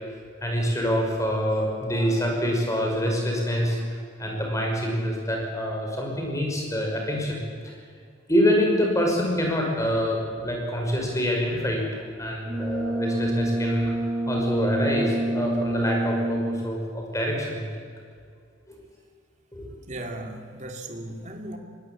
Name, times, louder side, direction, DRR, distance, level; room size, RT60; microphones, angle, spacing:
voice 1, 0.4-7.7 8.3-13.9 14.3-17.7 18.7-18.8 19.5-19.7, equal, 15° left, 0 dB, 5.6 m, -26 dB
Brass instrument, 12.5-16.8, right 1 dB, 15° right, 1.0 m, -28 dB
voice 2, 19.9-21.6, right 1 dB, 35° right, 3 dB, 2.7 m, -36 dB
23.0 x 19.0 x 8.7 m, 2.2 s
head